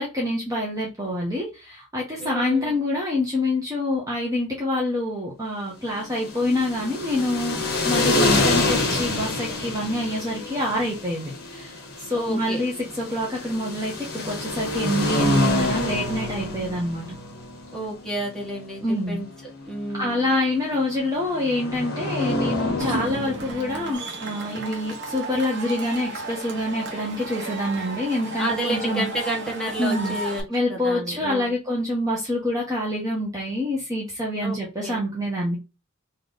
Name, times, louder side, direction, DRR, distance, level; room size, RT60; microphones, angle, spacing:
voice 1, 0.0-17.1 18.8-19.2 19.9-29.1 29.8-30.2 30.5-35.6, left 1 dB, 15° right, -3 dB, 0.9 m, -26 dB
voice 2, 2.2-2.8 12.1-12.6 17.7-19.3 19.6-20.3 28.4-30.4 30.7-31.5 34.4-35.0, right 1 dB, 5° left, -3 dB, 1.4 m, -30 dB
sound 1, 6.0-23.9, left 2 dB, 50° left, 1.2 m, -27 dB
Cheering / Crowd, 22.8-30.4, right 2 dB, 60° right, 1.0 m, -34 dB
3.3 x 2.9 x 3.8 m, 0.27 s
head